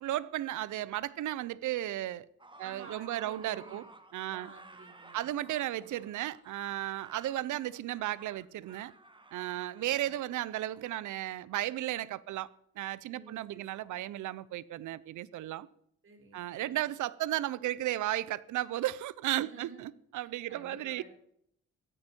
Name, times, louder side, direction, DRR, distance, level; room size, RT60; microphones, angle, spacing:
voice 1, 0.0-2.3 2.6-3.9 4.1-4.5 5.1-8.9 9.3-12.5 12.8-15.7 16.3-21.0, right 14 dB, 75° right, 0.8 m, -34 dB
sound 1, 2.4-10.9, right 2 dB, 15° right, 1.8 m, -55 dB
voice 2, 2.6-3.8 4.3-5.3 5.8-5.9 9.5-10.1 13.1-13.9 16.0-16.8 19.4-19.8 20.2-21.0, right 4 dB, 45° right, 4.0 m, -53 dB
16.5 x 14.0 x 4.5 m
cardioid pair, 90°, 30 cm